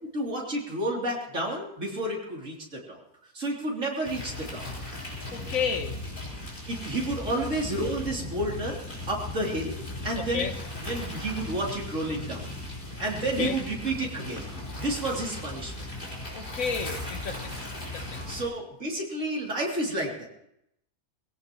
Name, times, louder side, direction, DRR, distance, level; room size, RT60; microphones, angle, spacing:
voice 1, 0.1-3.0 3.3-4.6 6.7-9.8 10.0-10.5 10.8-12.5 13.0-14.5 14.8-15.9 18.3-20.3, right 1 dB, 55° right, -1 dB, 3.4 m, -31 dB
sound 1, 4.0-18.4, left 1 dB, 30° left, 4.5 m, -37 dB
voice 2, 5.3-6.0 7.2-7.3 10.3-10.5 13.4-13.6 16.3-17.6 17.9-18.2, left 6 dB, 65° left, 6 dB, 1.6 m, -31 dB
20.5 x 17.0 x 3.0 m, 0.76 s
omnidirectional pair, 1.6 m